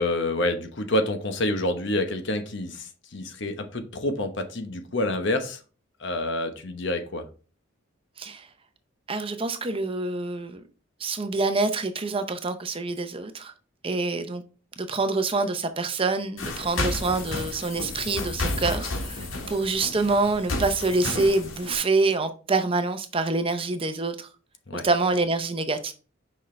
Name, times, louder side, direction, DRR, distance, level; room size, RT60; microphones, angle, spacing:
voice 1, 0.0-5.6 6.0-7.3 19.2-19.4 24.7-24.9, left 1 dB, 60° left, 1.0 m, -28 dB
voice 2, 9.1-10.6 11.0-13.5 13.8-14.4 14.8-24.3 24.7-25.9, right 3 dB, 25° right, 0.6 m, -26 dB
sound 1, 16.4-21.8, left 2 dB, 80° left, 1.5 m, -31 dB
6.4 x 5.4 x 3.2 m
head